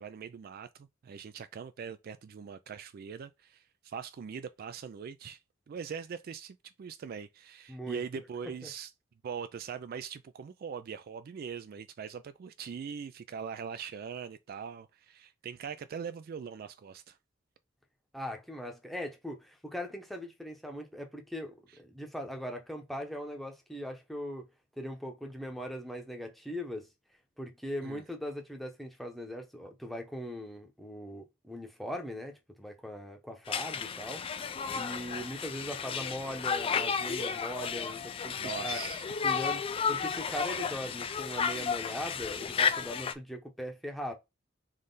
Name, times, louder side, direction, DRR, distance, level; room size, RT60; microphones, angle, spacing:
voice 1, 0.0-5.4 5.7-8.9 9.2-17.2 27.8-28.0 38.4-39.0, right 6 dB, 50° right, 0.3 m, -42 dB
voice 2, 7.7-8.0 8.6-8.7 18.1-24.5 24.8-26.9 27.4-38.8 39.2-44.1, equal, ahead, 0.8 m, -40 dB
Conversation, 33.5-43.1, left 6 dB, 30° left, 0.3 m, -33 dB
3.7 x 3.2 x 3.9 m
head